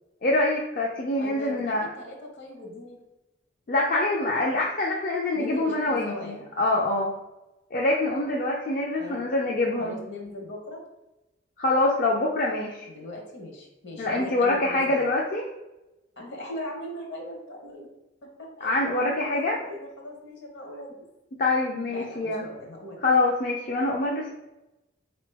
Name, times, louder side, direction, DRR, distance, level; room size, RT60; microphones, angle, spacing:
voice 1, 0.2-1.9 3.7-7.1 7.7-10.0 11.6-12.9 14.0-15.4 18.6-19.6 21.4-22.4 23.0-24.3, left 2 dB, 45° left, -2 dB, 0.4 m, -25 dB
voice 2, 1.2-3.0 5.3-6.5 9.0-9.2 9.8-10.8 12.8-15.0 16.2-17.9 18.2-21.1 21.9-23.0, left 1 dB, 65° left, 0 dB, 1.2 m, -39 dB
4.1 x 3.0 x 3.3 m, 0.98 s
head